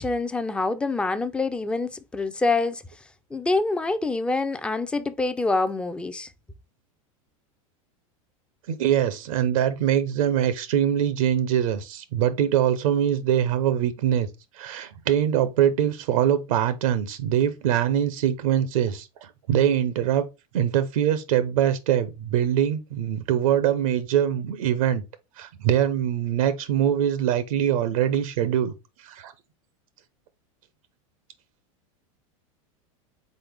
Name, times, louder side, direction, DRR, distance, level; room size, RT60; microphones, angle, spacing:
voice 1, 0.0-2.8 3.3-6.3, left 3 dB, 5° left, 0.3 m, -26 dB
voice 2, 8.7-14.3 14.6-20.3 20.5-25.0 25.4-28.7 29.0-29.3, right 10 dB, 80° right, 0.7 m, -23 dB
4.1 x 3.9 x 3.4 m
supercardioid pair, 125°, 18 cm